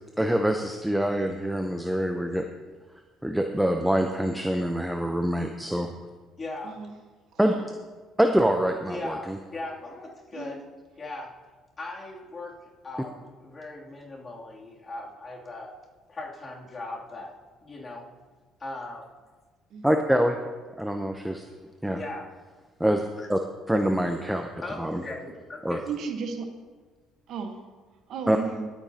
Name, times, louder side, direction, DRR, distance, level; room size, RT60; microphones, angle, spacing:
voice 1, 0.2-2.4 3.2-5.9 7.4-7.5 8.2-9.4 19.8-20.4 20.8-21.4 21.8-22.0 22.8-23.0 23.3-23.4 23.7-24.5 24.8-25.0 25.6-25.8 28.3-28.4, right 1 dB, 5° right, 5 dB, 0.7 m, -25 dB
voice 2, 6.4-6.8 8.9-10.6 11.0-11.3 11.8-12.6 12.8-15.7 16.1-17.3 17.6-18.1 18.6-19.1 21.9-22.3 23.2-23.3 24.6-25.8, left 2 dB, 30° left, -3 dB, 2.8 m, -38 dB
voice 3, 25.9-26.5 27.3-27.6 28.1-28.7, right 5 dB, 65° right, 5 dB, 1.2 m, -34 dB
20.5 x 8.9 x 2.9 m, 1.4 s
supercardioid pair, 80°, 0 cm